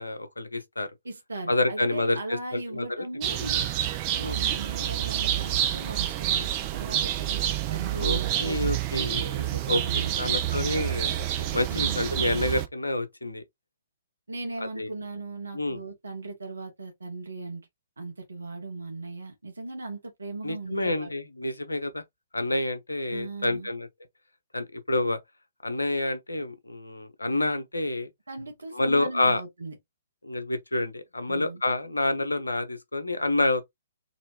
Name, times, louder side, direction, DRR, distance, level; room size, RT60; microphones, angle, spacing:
voice 1, 0.0-0.9 1.5-3.1 4.2-4.4 8.0-9.8 10.2-13.4 14.8-14.9 15.5-15.8 20.4-22.0 22.3-23.9 24.5-25.2 25.6-28.1 28.7-29.4 30.2-33.6, left 2 dB, 75° left, 0.8 m, -28 dB
voice 2, 1.0-3.6 4.1-7.4 7.7-8.6 9.4-10.1 11.7-12.1 14.3-17.7 18.0-21.1 23.1-23.7 28.3-29.8 31.3-31.6, right 2 dB, 70° right, 1.2 m, -38 dB
sound 1, 3.2-12.7, right 12 dB, 30° right, 0.6 m, -28 dB
4.1 x 2.5 x 2.9 m
figure-of-eight pair, 120°, 0 cm